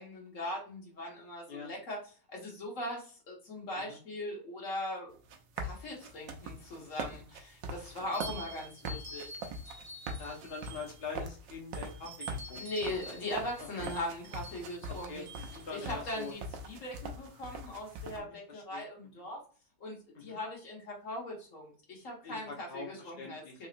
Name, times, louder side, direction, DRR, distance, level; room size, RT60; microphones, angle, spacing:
voice 1, 0.0-2.0 2.3-5.2 5.6-9.3 12.6-15.3 15.7-19.4 19.8-23.7, left 1 dB, 45° left, -2 dB, 1.4 m, -40 dB
sound 1, 5.1-18.2, right 2 dB, 75° right, 1.2 m, -42 dB
sound 2, 8.1-11.2 11.7-16.3, right 1 dB, 40° right, 1.1 m, -48 dB
voice 2, 10.2-12.9 13.6-13.9 14.9-16.3 18.5-18.8 20.1-20.4 22.2-23.7, left 4 dB, 75° left, 1 dB, 0.5 m, -44 dB
3.9 x 2.8 x 2.5 m, 0.38 s
omnidirectional pair, 2.2 m